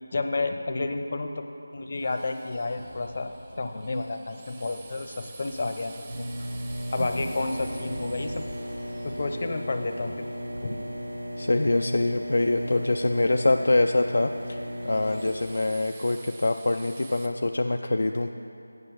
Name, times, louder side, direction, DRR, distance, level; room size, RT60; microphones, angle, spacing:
voice 1, 0.1-1.5 1.7-3.3 3.6-6.3 6.9-8.5 9.0-10.3 10.6-10.8, left 3 dB, 45° left, 6 dB, 0.8 m, -30 dB
Drill, 1.9-10.9 14.3-17.3, right 4 dB, 20° right, 0.7 m, -50 dB
sound 1, 2.8-13.0, right 1 dB, 60° right, 1.1 m, -47 dB
sound 2, 6.1-15.3, equal, 80° right, 2.7 m, -35 dB
voice 2, 11.4-18.3, left 2 dB, 70° left, 5 dB, 0.4 m, -24 dB
8.1 x 7.5 x 7.3 m, 2.7 s
figure-of-eight pair, 165°, 0 cm